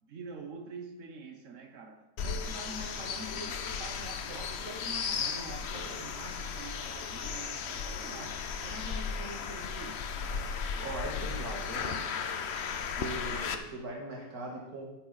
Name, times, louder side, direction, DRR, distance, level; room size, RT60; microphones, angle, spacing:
voice 1, 0.0-10.1, right 3 dB, 60° right, 1.4 m, -45 dB
sound 1, 2.2-13.5, left 6 dB, 55° left, 0.9 m, -35 dB
voice 2, 10.8-12.0 12.8-15.0, right 2 dB, 85° right, 2.3 m, -40 dB
9.7 x 8.6 x 4.1 m
omnidirectional pair, 1.5 m